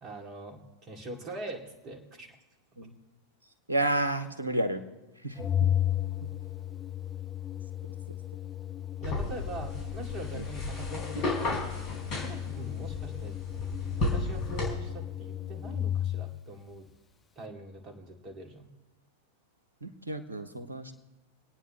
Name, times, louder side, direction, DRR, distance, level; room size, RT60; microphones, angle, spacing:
voice 1, 0.0-2.3 9.0-11.7 12.2-13.4 14.0-16.9 17.4-18.7, right 2 dB, 30° right, 2 dB, 2.4 m, -43 dB
voice 2, 3.7-4.8 5.2-5.7 10.3-10.4 19.8-20.9, right 1 dB, 80° right, 10 dB, 1.1 m, -31 dB
Organ, 5.4-16.4, left 11 dB, 20° left, 0.6 m, -34 dB
sound 1, 9.0-14.7, left 2 dB, 45° left, 4.3 m, -34 dB
27.0 x 9.2 x 3.1 m, 1.1 s
figure-of-eight pair, 90°, 0 cm